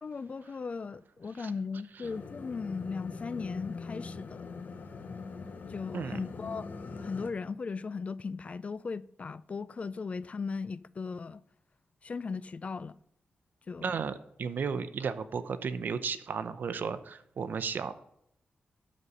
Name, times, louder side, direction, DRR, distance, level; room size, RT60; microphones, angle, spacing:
voice 1, 0.0-4.5 5.7-6.7 7.0-11.4 12.0-12.9 13.7-14.0, left 4 dB, 40° left, 0.3 m, -37 dB
sound 1, 2.0-7.3, left 4 dB, 60° left, 1.1 m, -42 dB
voice 2, 13.8-17.9, right 6 dB, 70° right, 0.6 m, -34 dB
12.0 x 4.2 x 6.6 m
wide cardioid pair, 105°, 3 cm